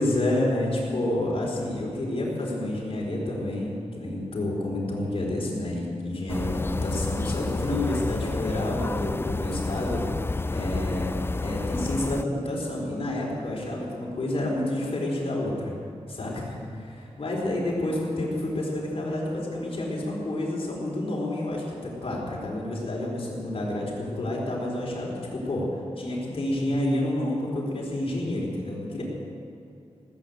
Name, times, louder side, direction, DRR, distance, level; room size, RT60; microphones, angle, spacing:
voice 1, 0.0-10.0 10.5-11.1 11.4-15.8 16.1-25.7 26.0-29.0, left 1 dB, 55° left, -3 dB, 4.3 m, -29 dB
sound 1, 6.3-12.2, left 3 dB, 20° left, 0.3 m, -30 dB
18.0 x 9.0 x 8.0 m, 2.6 s
wide cardioid pair, 110°, 11 cm